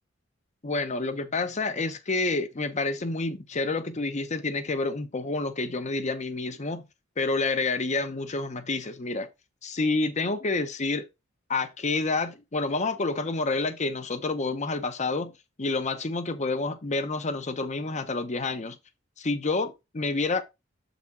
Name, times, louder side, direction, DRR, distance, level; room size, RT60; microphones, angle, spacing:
voice 1, 0.6-6.9 7.2-9.3 9.6-11.1 11.5-15.3 15.6-18.8 19.2-20.4, left 3 dB, 35° left, 0.8 m, -28 dB
7.3 x 4.1 x 4.2 m
head